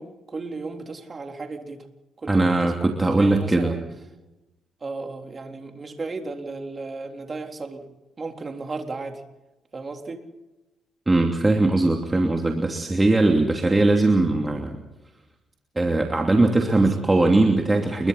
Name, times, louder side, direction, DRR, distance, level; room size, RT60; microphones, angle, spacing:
voice 1, 0.0-1.8 2.2-2.9 3.1-3.8 4.8-7.9 8.2-9.2 9.7-10.2 13.6-13.8 16.8-16.9, right 3 dB, 35° right, 3 dB, 3.7 m, -35 dB
voice 2, 2.3-3.7 11.1-14.8 15.8-18.1, right 2 dB, 20° right, 2 dB, 2.8 m, -20 dB
29.0 x 23.0 x 4.3 m, 1.0 s
cardioid pair, 90°, 0 cm